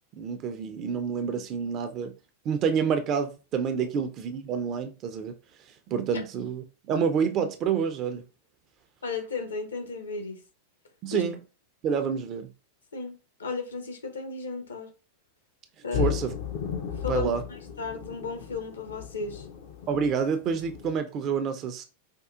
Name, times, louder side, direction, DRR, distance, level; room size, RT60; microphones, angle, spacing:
voice 1, 0.2-2.1 2.4-5.3 5.9-8.2 11.0-11.4 11.8-12.5 15.9-16.3 17.1-17.4 19.9-21.8, right 6 dB, 35° right, 0.5 m, -28 dB
voice 2, 9.0-10.4 11.1-11.2 12.9-14.9 15.8-16.2 17.0-17.3 17.8-19.5, left 4 dB, 70° left, 0.8 m, -34 dB
sound 1, 15.9-21.0, left 10 dB, 50° left, 0.5 m, -35 dB
4.4 x 2.3 x 2.4 m
figure-of-eight pair, 90°, 0 cm